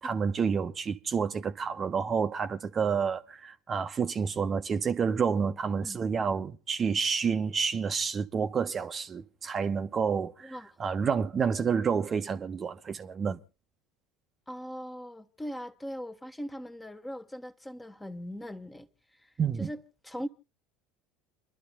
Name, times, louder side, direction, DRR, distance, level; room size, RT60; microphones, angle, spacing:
voice 1, 0.0-13.4 19.4-19.7, right 6 dB, 35° right, 0.8 m, -29 dB
voice 2, 14.5-18.9 19.2-19.3 19.6-20.3, equal, 10° left, 1.1 m, -40 dB
29.5 x 12.0 x 2.2 m
hypercardioid pair, 70°, 0 cm